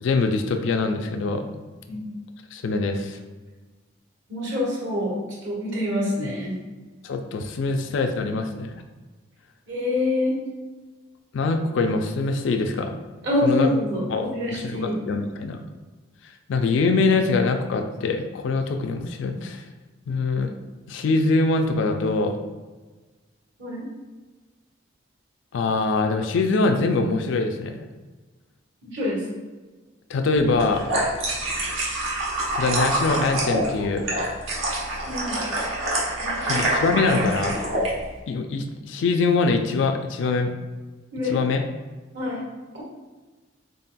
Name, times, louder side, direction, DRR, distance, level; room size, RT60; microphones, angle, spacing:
voice 1, 0.0-1.5 2.5-3.2 7.0-8.7 11.3-13.0 13.4-13.7 14.1-15.6 16.5-19.6 20.1-20.5 20.9-22.3 25.5-27.8 30.1-30.9 32.6-34.1 36.4-37.6 38.3-40.5 41.2-41.6, left 3 dB, 70° left, 5 dB, 0.3 m, -23 dB
voice 2, 4.3-5.2 5.4-6.5 9.7-10.3 13.2-15.0 23.6-23.8 28.8-29.2 35.1-35.4 36.2-36.6 41.1-41.4 42.1-42.4, left 1 dB, 65° right, -5 dB, 1.4 m, -26 dB
sound 1, 30.5-37.9, right 1 dB, 90° right, 1.1 m, -26 dB
4.0 x 3.9 x 2.2 m, 1.3 s
head